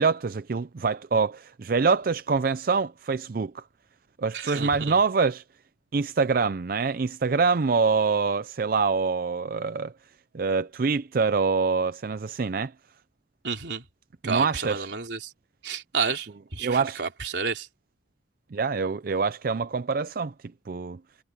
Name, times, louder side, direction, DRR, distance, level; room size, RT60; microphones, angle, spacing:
voice 1, 0.0-3.6 4.2-5.4 5.9-9.9 10.3-12.7 14.2-14.9 16.6-17.0 18.5-20.3 20.7-21.0, right 4 dB, 55° right, 0.5 m, -25 dB
voice 2, 4.3-5.0 13.4-13.8 14.2-15.3 15.6-17.7, right 5 dB, 85° right, 3.5 m, -31 dB
head